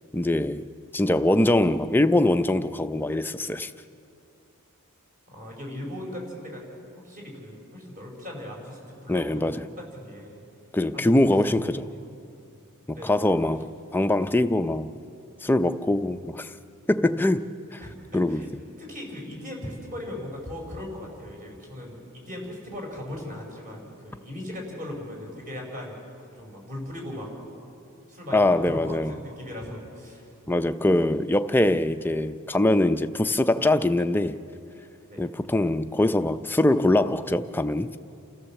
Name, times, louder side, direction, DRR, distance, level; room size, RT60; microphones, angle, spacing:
voice 1, 0.1-0.6 0.9-3.7 9.1-9.6 10.7-11.9 12.9-13.7 13.9-14.9 15.4-16.5 16.9-17.4 17.7-17.8 18.1-18.4 28.3-29.1 30.5-34.4 35.2-38.0, left 1 dB, 10° left, 9 dB, 0.5 m, -23 dB
voice 2, 5.3-6.6 6.9-10.4 10.9-12.0 12.9-13.1 17.8-17.9 18.3-18.5 18.8-26.0 26.3-27.3 28.1-30.3 35.1-35.3, left 1 dB, 40° right, 0 dB, 5.0 m, -38 dB
29.0 x 14.5 x 7.2 m, 2.5 s
head